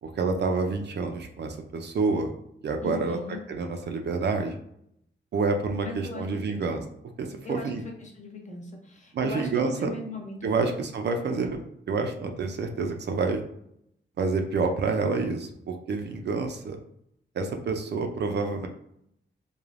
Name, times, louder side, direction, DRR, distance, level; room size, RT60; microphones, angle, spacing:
voice 1, 0.0-2.3 2.6-4.6 5.3-6.8 7.2-7.8 9.1-9.9 10.4-13.4 14.2-16.8 17.4-18.7, right 4 dB, 55° right, 5 dB, 0.4 m, -28 dB
voice 2, 2.8-3.4 5.8-6.7 7.4-7.7 8.0-10.4 10.6-10.7, left 2 dB, 35° left, 1 dB, 0.6 m, -38 dB
3.2 x 2.1 x 2.4 m, 0.74 s
wide cardioid pair, 105°, 21 cm